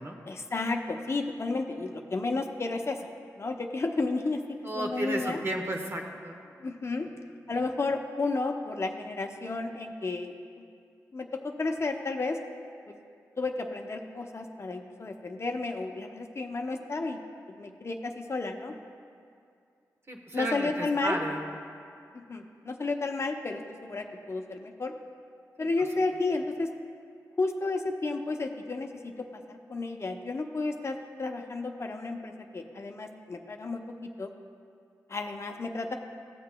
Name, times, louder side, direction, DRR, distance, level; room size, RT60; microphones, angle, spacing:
voice 1, 0.3-3.1 3.4-5.4 6.6-7.1 7.5-10.6 11.1-12.4 12.9-13.0 13.4-17.2 17.5-18.7 20.3-21.2 22.1-24.9 25.6-26.7 27.4-34.3 35.1-36.0, left 3 dB, 45° left, 4 dB, 0.6 m, -32 dB
voice 2, 4.6-6.4 20.1-21.4 25.6-25.7, right 1 dB, 40° right, 2 dB, 1.0 m, -33 dB
15.5 x 6.6 x 2.2 m, 2.4 s
cardioid pair, 45°, 7 cm